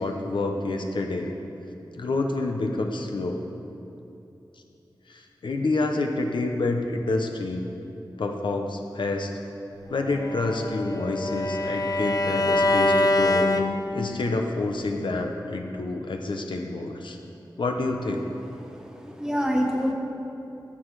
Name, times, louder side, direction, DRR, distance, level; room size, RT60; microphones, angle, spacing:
voice 1, 0.0-1.3 2.0-3.4 5.1-7.6 8.2-9.3 9.9-13.5 13.9-17.2 17.6-18.3, left 2 dB, 80° left, 3 dB, 0.8 m, -28 dB
Bowed string instrument, 10.1-14.3, left 2 dB, 50° left, 0.6 m, -24 dB
voice 2, 18.6-19.9, equal, 10° right, 0 dB, 1.4 m, -27 dB
13.0 x 7.7 x 4.7 m, 2.8 s
wide cardioid pair, 85°, 8 cm